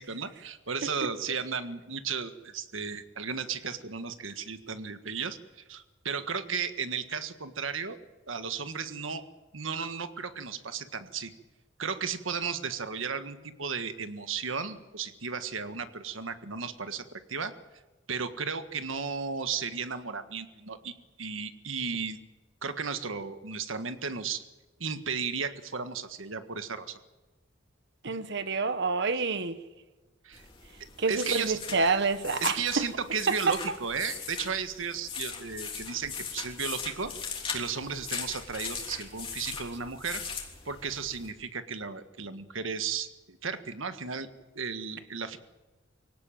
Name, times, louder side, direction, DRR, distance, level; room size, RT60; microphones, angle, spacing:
voice 1, 0.0-8.0 8.3-9.2 9.5-11.3 11.8-17.5 18.1-22.2 22.6-24.4 24.8-27.0 30.2-30.5 31.1-31.6 32.4-37.1 37.5-40.2 40.7-44.3 44.6-45.4, right 5 dB, 80° right, 1.6 m, -34 dB
voice 2, 28.0-29.6 31.0-32.9 33.3-33.5, right 4 dB, 65° right, 1.4 m, -28 dB
sound 1, 30.3-41.3, left 6 dB, 30° left, 3.4 m, -40 dB
24.5 x 17.5 x 9.2 m
head